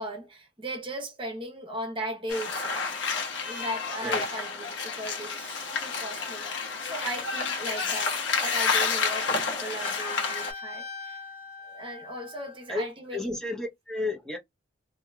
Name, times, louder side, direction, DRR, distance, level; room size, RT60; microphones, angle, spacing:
voice 1, 0.0-3.0 3.5-11.2 11.6-13.4, right 1 dB, 25° right, 0.9 m, -37 dB
sound 1, 2.3-10.5, left 4 dB, 80° left, 1.2 m, -30 dB
Trumpet, 9.8-12.7, left 4 dB, 35° left, 1.2 m, -40 dB
voice 2, 13.1-14.4, left 2 dB, 5° left, 0.8 m, -32 dB
2.8 x 2.8 x 2.3 m
head